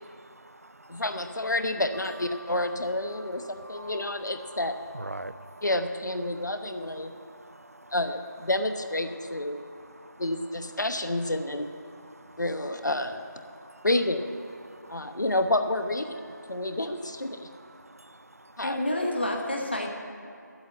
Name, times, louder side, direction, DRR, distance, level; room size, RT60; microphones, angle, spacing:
voice 1, 0.0-1.1 2.3-5.7 6.2-8.0 9.1-10.8 11.4-11.6 11.8-12.5 13.4-13.9 14.6-15.2 16.1-18.6, right 1 dB, 50° right, 13 dB, 0.4 m, -48 dB
voice 2, 0.9-4.8 5.6-7.1 7.9-9.6 10.2-11.7 12.4-13.2 13.8-14.3 14.9-16.2 16.5-17.5 18.6-18.8, left 1 dB, 70° left, 8 dB, 0.9 m, -29 dB
voice 3, 18.6-19.9, left 1 dB, 35° left, 1 dB, 1.2 m, -28 dB
9.4 x 8.1 x 8.3 m, 2.6 s
figure-of-eight pair, 175°, 10 cm